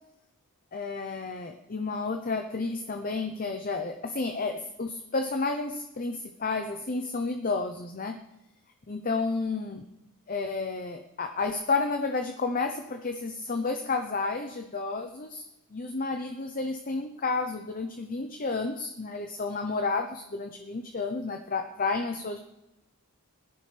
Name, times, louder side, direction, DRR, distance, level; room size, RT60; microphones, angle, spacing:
voice 1, 0.7-8.2 8.9-9.8 10.3-15.4 15.7-22.4, left 3 dB, 40° left, 6 dB, 0.8 m, -31 dB
20.5 x 13.5 x 3.4 m, 0.92 s
head